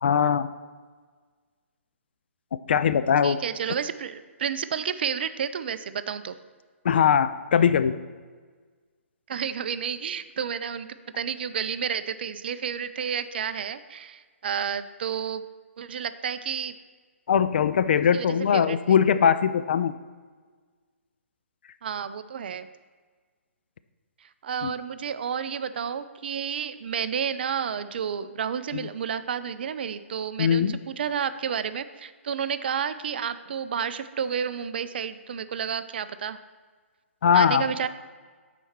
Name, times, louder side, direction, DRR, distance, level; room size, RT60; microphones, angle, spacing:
voice 1, 0.0-0.5 2.7-3.4 6.8-8.0 17.3-19.9 24.6-24.7 28.7-28.9 30.4-30.8 37.2-37.7, left 7 dB, 50° left, 13 dB, 0.3 m, -21 dB
voice 2, 3.2-6.3 9.3-10.9 11.2-15.4 15.8-16.7 18.1-19.0 21.8-22.7 24.2-36.4 37.3-37.9, right 7 dB, 50° right, 13 dB, 0.4 m, -31 dB
9.9 x 4.2 x 4.5 m, 1.5 s
figure-of-eight pair, 130°, 7 cm